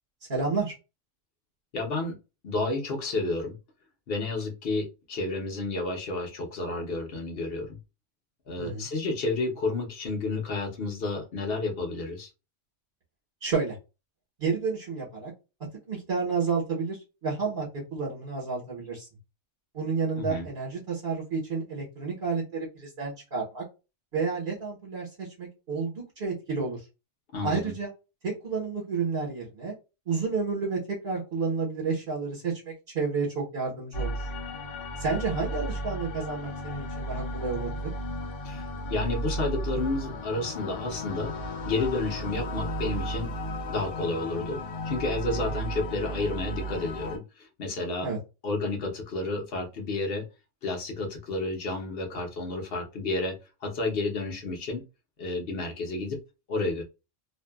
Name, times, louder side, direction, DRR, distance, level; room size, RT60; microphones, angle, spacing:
voice 1, 0.3-0.7 8.6-8.9 13.4-13.8 14.4-15.3 15.9-17.7 17.9-19.1 19.7-23.6 24.1-26.9 27.4-27.9 28.2-29.7 30.1-34.3 35.0-37.9 45.4-45.5 48.0-48.2, right 4 dB, 50° right, -3 dB, 1.1 m, -30 dB
voice 2, 1.7-2.2 2.4-3.6 4.1-7.8 8.5-12.3 20.2-20.5 27.3-27.7 38.4-41.3 41.6-43.3 43.7-44.6 44.8-48.1 48.4-50.3 50.6-53.4 53.6-54.8 55.2-56.2 56.5-56.8, left 3 dB, 55° left, 3 dB, 0.9 m, -31 dB
sound 1, 33.9-47.2, right 1 dB, 85° left, 1.0 m, -34 dB
2.6 x 2.3 x 2.3 m, 0.28 s
omnidirectional pair, 1.3 m